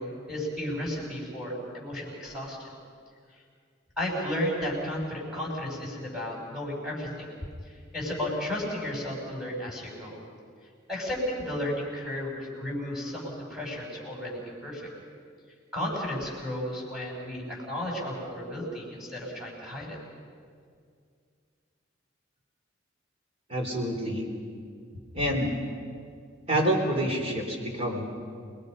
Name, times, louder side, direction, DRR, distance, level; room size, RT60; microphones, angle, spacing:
voice 1, 0.0-2.7 3.3-3.4 4.0-7.3 7.6-10.2 10.9-14.8 15.7-20.0, left 1 dB, ahead, -3 dB, 6.9 m, -33 dB
voice 2, 23.5-24.3 25.1-25.6 26.5-28.1, equal, 35° right, 0 dB, 4.0 m, -27 dB
28.5 x 21.5 x 5.5 m, 2.2 s
head